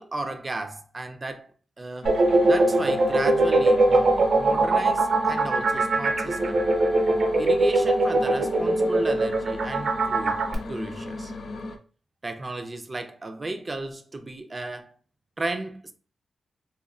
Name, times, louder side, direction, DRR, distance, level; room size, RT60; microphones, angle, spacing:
voice 1, 0.0-1.5 1.8-2.1 2.4-6.6 7.4-10.4 10.7-11.3 12.2-14.9 15.4-15.9, right 2 dB, 30° right, 0.5 m, -34 dB
sound 1, 2.0-11.8, left 2 dB, 70° left, 0.5 m, -36 dB
sound 2, 2.0-10.5, right 2 dB, 70° right, 0.7 m, -21 dB
4.1 x 2.2 x 2.4 m
cardioid pair, 90°, 0 cm